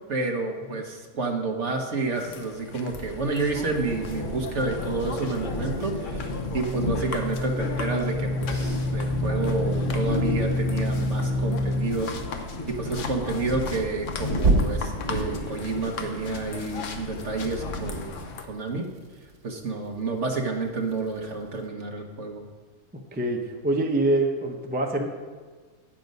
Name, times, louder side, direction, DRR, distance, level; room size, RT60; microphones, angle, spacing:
voice 1, 0.1-12.1 12.7-18.9 19.4-22.4, right 3 dB, 55° right, 3 dB, 1.3 m, -30 dB
sound 1, 2.1-18.5, left 5 dB, 60° left, 1.1 m, -39 dB
sound 2, 2.9-18.1, left 1 dB, 85° left, 2.9 m, -34 dB
sound 3, 6.1-11.9 14.4-15.1, equal, 85° right, 1.6 m, -27 dB
voice 2, 23.1-25.1, right 2 dB, 10° right, 2 dB, 0.5 m, -25 dB
9.2 x 7.4 x 5.3 m, 1.4 s
omnidirectional pair, 1.6 m